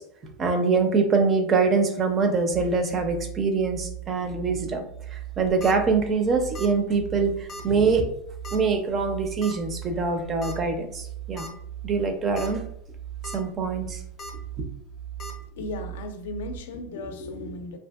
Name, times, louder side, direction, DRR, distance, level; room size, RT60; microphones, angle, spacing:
voice 1, 0.0-4.8 5.1-8.1 8.5-11.5 11.8-12.6 13.3-14.0 14.6-14.7, right 4 dB, 25° right, 6 dB, 0.4 m, -24 dB
sound 1, 2.5-16.6, right 12 dB, 90° right, 0.6 m, -39 dB
sound 2, 5.3-5.7 6.5-6.8 7.1-7.2 7.5-7.6 8.4-8.7 9.4-9.5 10.4-10.6 11.0-11.1 11.4-11.5 12.2-12.5 12.9-13.4 14.2-14.3 15.2-15.3, left 1 dB, 30° left, 0.5 m, -39 dB
voice 2, 15.5-17.8, left 2 dB, 85° left, 7 dB, 0.4 m, -35 dB
2.6 x 2.5 x 2.3 m, 0.69 s
supercardioid pair, 140°, 0 cm